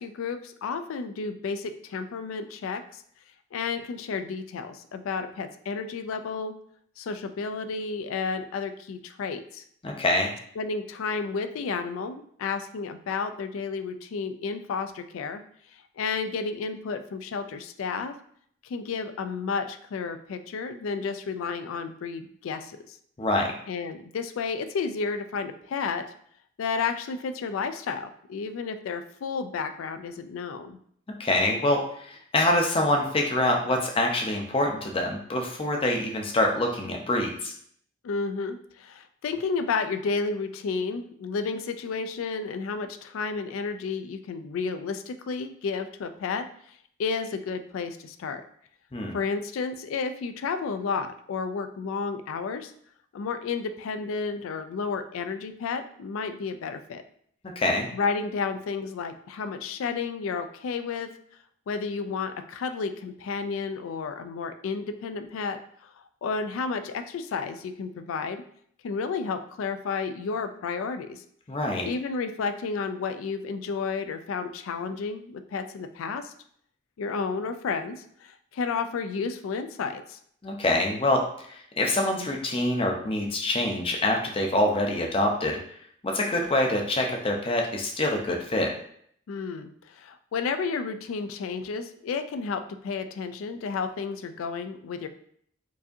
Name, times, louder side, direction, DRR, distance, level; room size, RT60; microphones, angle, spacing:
voice 1, 0.0-3.0 3.5-6.5 7.0-9.6 10.6-15.4 15.7-18.1 18.6-23.0 23.7-26.0 26.6-30.8 38.0-48.4 49.1-52.7 53.1-57.0 57.9-61.1 61.7-65.9 66.2-68.4 68.8-71.2 71.8-76.3 77.0-80.2 89.3-95.1, left 5 dB, 75° left, 9 dB, 0.3 m, -32 dB
voice 2, 9.8-10.3 23.2-23.5 31.2-37.5 48.9-49.1 57.6-57.9 71.5-71.9 80.4-85.6 86.0-88.7, left 1 dB, 25° left, 1 dB, 0.5 m, -25 dB
4.7 x 2.7 x 2.6 m, 0.64 s
head